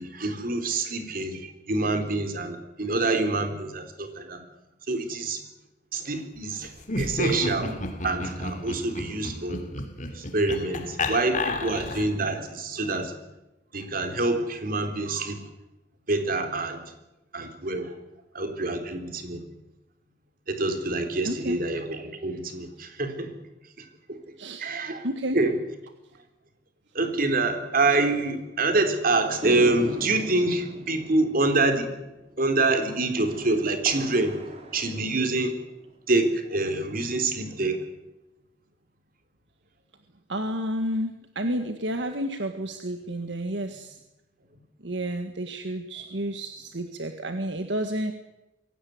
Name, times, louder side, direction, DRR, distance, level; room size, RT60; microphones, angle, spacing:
voice 1, 0.0-4.4 4.9-5.4 5.9-7.7 8.0-9.6 10.1-13.1 13.7-15.4 16.1-16.8 17.3-17.9 18.3-19.5 20.5-23.3 23.8-24.2 24.6-25.1 25.3-25.5 26.9-31.9 32.4-34.3 34.7-35.5 36.1-37.8, right 2 dB, 50° right, 6 dB, 3.8 m, -26 dB
Laughter, 6.8-12.2, left 2 dB, 45° left, 3.3 m, -31 dB
voice 2, 21.2-21.6 24.4-24.7 25.0-25.4 40.3-44.0 44.8-48.1, equal, 75° right, 6 dB, 1.7 m, -30 dB
sound 1, 29.4-35.9, equal, 35° right, 3.8 m, -39 dB
23.0 x 17.5 x 9.5 m, 0.98 s
head